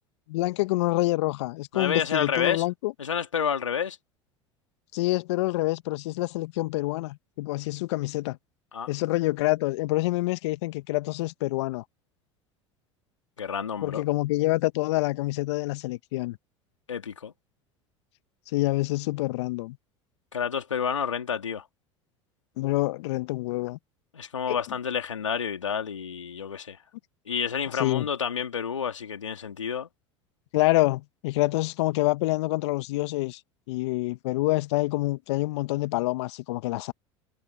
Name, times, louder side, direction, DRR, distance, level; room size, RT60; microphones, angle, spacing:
voice 1, 0.3-2.9 4.9-8.4 8.9-11.8 13.8-16.4 18.5-19.8 22.6-23.8 24.5-24.6 27.7-28.1 30.5-33.4 33.7-36.9, left 20 dB, 70° left, 1.5 m, -27 dB
voice 2, 1.7-2.6 3.0-4.0 8.7-8.9 13.4-14.0 16.9-17.3 20.3-21.6 24.1-26.8 27.3-29.9, left 7 dB, 85° left, 2.9 m, -29 dB
hypercardioid pair, 75°, 15 cm